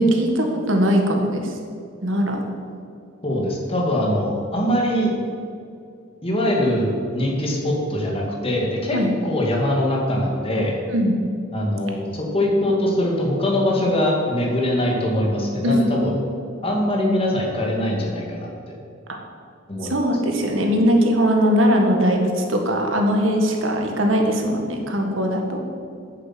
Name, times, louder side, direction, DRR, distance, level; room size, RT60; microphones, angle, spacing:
voice 1, 0.0-1.6 2.0-2.4 8.9-9.1 10.9-11.2 15.6-15.9 19.1-19.2 19.9-25.6, equal, 75° right, 3 dB, 1.7 m, -20 dB
voice 2, 3.2-5.1 6.2-10.8 11.5-16.2 16.6-18.8 19.7-19.9, left 1 dB, 30° left, -1 dB, 2.2 m, -22 dB
9.0 x 7.8 x 7.6 m, 2.3 s
head